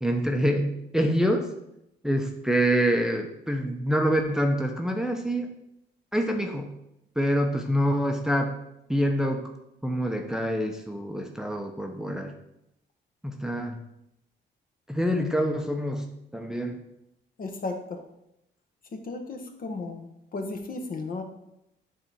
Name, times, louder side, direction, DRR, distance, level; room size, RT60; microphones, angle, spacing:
voice 1, 0.0-1.5 2.0-5.5 6.1-6.7 7.2-8.5 8.9-9.4 9.8-12.3 13.2-13.8 14.9-16.0 16.3-16.7, equal, 5° right, 3 dB, 0.7 m, -26 dB
voice 2, 17.4-18.0 19.0-20.1 20.3-21.2, left 3 dB, 45° left, 4 dB, 1.0 m, -34 dB
8.7 x 3.4 x 4.2 m, 0.82 s
cardioid pair, 90°, 20 cm